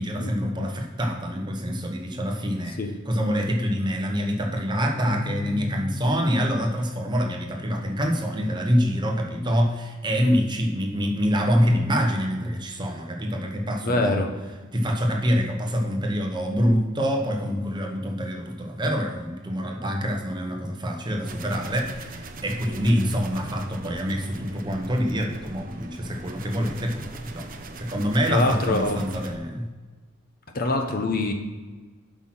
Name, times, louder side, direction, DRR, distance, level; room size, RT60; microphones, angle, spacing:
voice 1, 0.0-2.8 3.1-14.2 14.7-27.5 27.8-29.7, equal, 20° right, 2 dB, 1.0 m, -25 dB
Keyboard (musical), 5.0-7.9, left 3 dB, 60° left, 0.7 m, -37 dB
voice 2, 13.8-14.3 28.3-29.0 30.5-31.3, left 2 dB, 45° left, 4 dB, 1.0 m, -24 dB
sound 1, 21.2-29.3, right 2 dB, 40° right, 0.7 m, -40 dB
8.1 x 6.1 x 6.0 m, 1.3 s
head